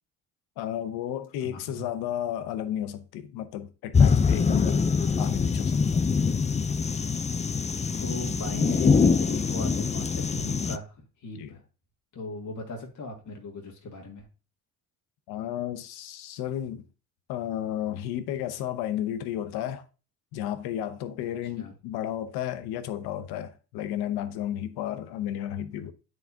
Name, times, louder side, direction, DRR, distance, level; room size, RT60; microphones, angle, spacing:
voice 1, 0.6-6.1 11.3-11.6 15.3-16.8 17.3-19.8 20.3-25.9, left 11 dB, 85° left, 0.8 m, -33 dB
voice 2, 1.4-1.9 8.0-11.6 12.1-14.3 21.2-21.7, left 2 dB, 50° left, 1.9 m, -37 dB
sound 1, 3.9-10.8, left 5 dB, 20° left, 0.5 m, -24 dB
9.0 x 4.7 x 2.8 m
supercardioid pair, 75°, 38 cm